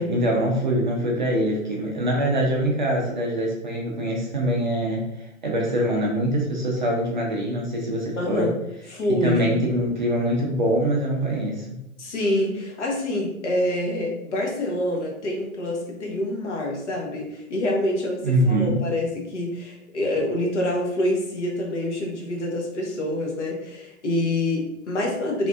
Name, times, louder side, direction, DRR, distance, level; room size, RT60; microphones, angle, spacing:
voice 1, 0.0-8.5 9.1-11.7 18.2-18.8, right 1 dB, 35° right, -2 dB, 0.5 m, -24 dB
voice 2, 8.2-8.5 8.9-9.6 12.0-25.5, left 1 dB, 55° left, -1 dB, 1.1 m, -26 dB
3.4 x 2.5 x 2.4 m, 0.89 s
hypercardioid pair, 150°, 43 cm